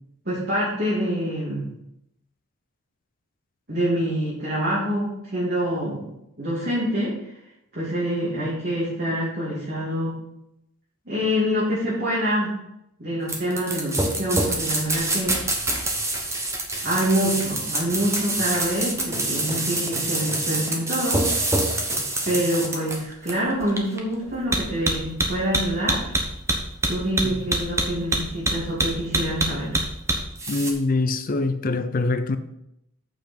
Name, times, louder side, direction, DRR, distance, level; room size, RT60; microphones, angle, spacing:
voice 1, 0.2-1.7 3.7-6.0 6.4-7.1 7.7-10.2 11.1-12.5 13.0-15.4 16.8-21.2 22.2-26.1 26.9-29.8, equal, 45° right, 2.6 m, -26 dB
sound 1, 13.3-30.7, right 2 dB, 15° right, 0.9 m, -25 dB
voice 2, 30.5-32.4, left 3 dB, 40° left, 0.5 m, -24 dB
6.9 x 5.8 x 5.5 m
head